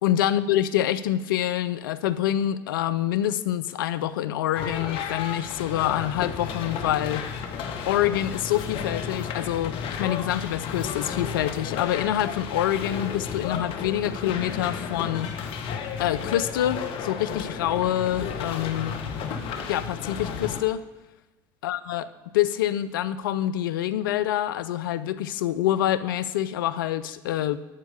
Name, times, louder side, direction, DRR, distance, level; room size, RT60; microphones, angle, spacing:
voice 1, 0.0-7.3 7.9-15.3 16.0-19.0 19.7-20.8 21.6-22.1 22.3-27.6, left 12 dB, 75° left, 12 dB, 0.5 m, -26 dB
sound 1, 4.5-20.6, left 6 dB, 55° left, 1.0 m, -33 dB
11.5 x 4.7 x 8.1 m, 1.1 s
hypercardioid pair, 70°, 11 cm